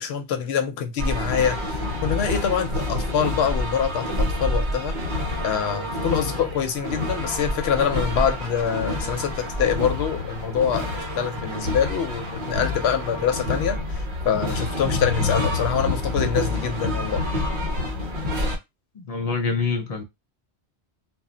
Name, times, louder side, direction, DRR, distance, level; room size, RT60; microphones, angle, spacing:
voice 1, 0.0-5.1 5.4-17.2, left 7 dB, 70° left, 0.8 m, -25 dB
sound 1, 1.0-18.6, left 2 dB, 50° right, 0.9 m, -27 dB
voice 2, 18.9-20.0, left 4 dB, 55° left, 0.4 m, -26 dB
2.2 x 2.1 x 3.7 m
omnidirectional pair, 1.1 m